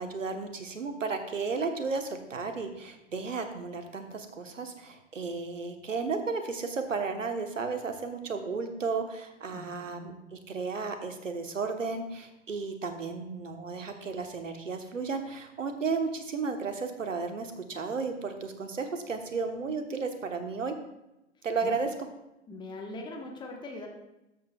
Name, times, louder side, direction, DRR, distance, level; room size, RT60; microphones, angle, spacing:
voice 1, 0.0-20.8 21.4-21.9, right 4 dB, 85° right, 6 dB, 1.3 m, -33 dB
voice 2, 9.5-10.1 21.6-21.8 22.5-23.9, left 2 dB, 10° left, 1 dB, 1.2 m, -41 dB
13.5 x 7.4 x 2.4 m, 0.90 s
figure-of-eight pair, 110°, 37 cm